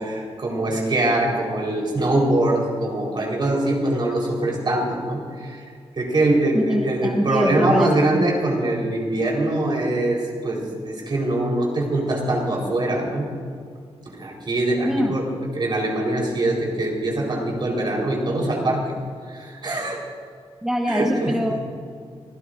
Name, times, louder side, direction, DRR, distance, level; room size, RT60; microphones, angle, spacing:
voice 1, 0.0-5.7 6.0-13.3 14.1-15.2 15.5-18.8 19.3-20.0 20.9-21.3, right 1 dB, 45° right, -1 dB, 4.3 m, -23 dB
voice 2, 6.5-8.3 14.8-15.2 20.6-21.6, equal, 5° right, 1 dB, 1.1 m, -24 dB
27.5 x 16.0 x 2.6 m, 2.1 s
wide cardioid pair, 145°, 11 cm